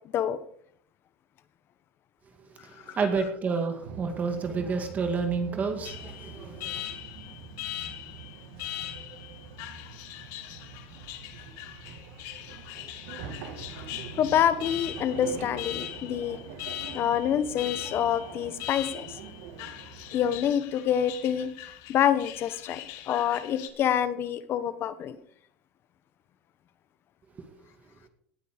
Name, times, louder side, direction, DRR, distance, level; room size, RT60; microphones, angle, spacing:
voice 1, 2.6-6.8, right 4 dB, 25° right, 6 dB, 2.1 m, -30 dB
sound 1, 3.8-20.4, right 6 dB, 70° right, 2.7 m, -44 dB
Alarm, 5.8-23.7, left 14 dB, 60° left, 1.6 m, -41 dB
voice 2, 14.2-16.4 16.9-19.2 20.1-21.5 21.9-22.8 23.1-25.2, left 9 dB, 40° left, 13 dB, 1.2 m, -26 dB
18.0 x 7.6 x 5.2 m, 0.64 s
supercardioid pair, 140°, 6 cm